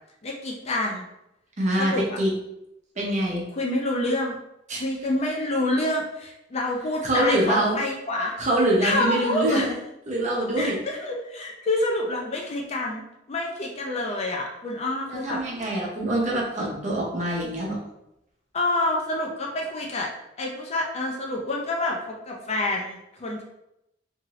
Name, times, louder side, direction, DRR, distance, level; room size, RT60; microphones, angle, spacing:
voice 1, 0.2-1.1 1.8-2.1 3.5-4.4 4.8-8.3 8.8-9.7 10.6-13.0 13.3-15.4 18.5-20.1 20.4-23.4, left 1 dB, 30° left, 0 dB, 0.4 m, -27 dB
voice 2, 1.6-2.3 3.0-3.4 4.7-4.8 7.0-7.8 8.4-9.7 10.1-10.8 15.1-17.8, right 1 dB, 35° right, -3 dB, 0.7 m, -24 dB
2.7 x 2.5 x 3.0 m, 0.84 s
head